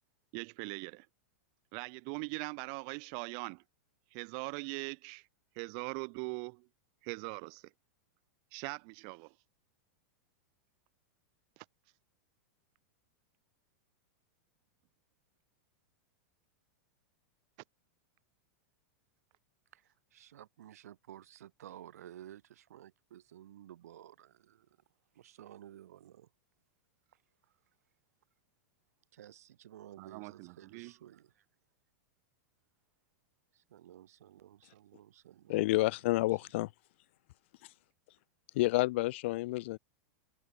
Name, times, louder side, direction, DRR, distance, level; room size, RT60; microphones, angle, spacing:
voice 1, 0.3-1.1 1.7-3.6 4.1-5.2 5.5-6.7 7.0-7.7 8.5-9.3 11.6-11.7 30.0-30.9, right 40 dB or more, 40° right, 1.2 m, -41 dB
voice 2, 19.7-24.7 25.1-26.3 29.1-31.4 33.5-35.7 36.3-36.4, right 11 dB, 85° right, 2.8 m, -54 dB
voice 3, 35.5-36.7 38.5-39.8, left 19 dB, 50° left, 0.7 m, -29 dB
supercardioid pair, 165°, 8 cm